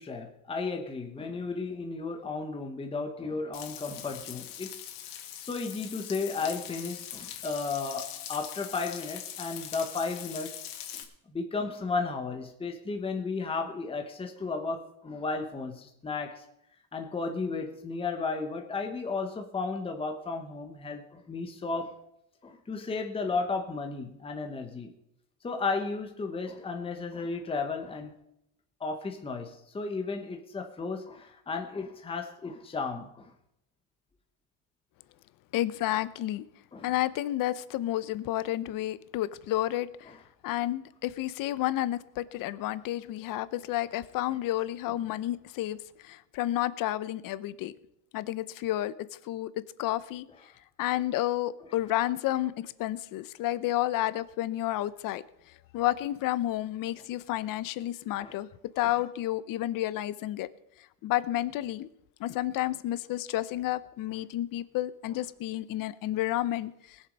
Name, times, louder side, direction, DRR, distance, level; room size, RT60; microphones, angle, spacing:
voice 1, 0.0-4.9 5.4-10.5 11.3-16.4 16.9-22.0 22.4-24.9 25.4-28.1 28.8-33.3 36.7-36.9 40.1-40.2 44.3-44.4 44.9-45.0 58.2-58.3, left 4 dB, 15° left, 4 dB, 1.1 m, -34 dB
Frying (food), 3.5-11.0, left 10 dB, 90° left, 2.2 m, -42 dB
voice 2, 35.5-36.5 36.8-40.1 40.4-45.8 46.0-47.7 48.1-48.9 49.2-49.5 49.8-50.3 50.8-55.2 55.7-58.5 58.8-60.5 61.0-61.9 62.2-66.7, left 14 dB, 50° left, 16 dB, 0.8 m, -30 dB
20.0 x 7.3 x 5.3 m, 0.79 s
cardioid pair, 155°, 42 cm